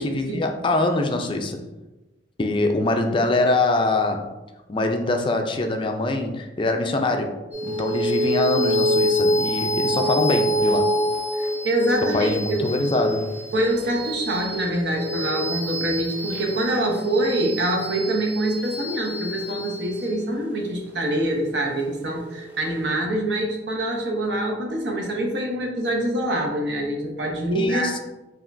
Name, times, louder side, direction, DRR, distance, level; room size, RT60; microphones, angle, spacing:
voice 1, 0.0-1.6 2.4-4.3 4.7-7.3 7.6-10.8 12.0-13.2 27.5-28.0, left 2 dB, 30° left, 4 dB, 0.4 m, -23 dB
sound 1, 7.5-22.3, equal, 10° right, 0.6 m, -26 dB
voice 2, 11.4-12.6 13.5-27.9, right 1 dB, 70° right, 1 dB, 0.8 m, -25 dB
5.1 x 2.9 x 2.6 m, 1.1 s
head